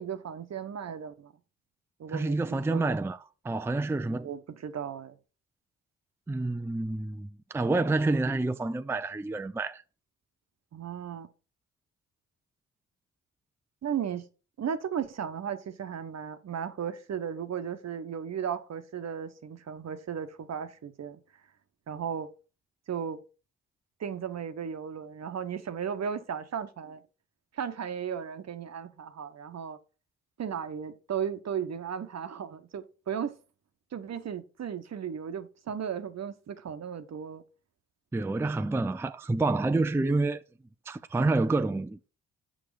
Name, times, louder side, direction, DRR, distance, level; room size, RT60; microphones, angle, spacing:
voice 1, 0.0-1.3 2.0-2.9 4.2-5.2 10.7-11.3 13.8-14.3 14.6-21.2 21.9-22.3 22.9-23.2 24.0-27.0 27.5-29.8 30.4-33.4 33.9-37.4, right 8 dB, 55° right, 1.0 m, -35 dB
voice 2, 2.1-3.2 3.4-4.3 6.3-9.8 38.1-40.4 40.9-42.1, right 2 dB, 10° right, 0.5 m, -28 dB
6.4 x 5.8 x 4.8 m
supercardioid pair, 50°, 32 cm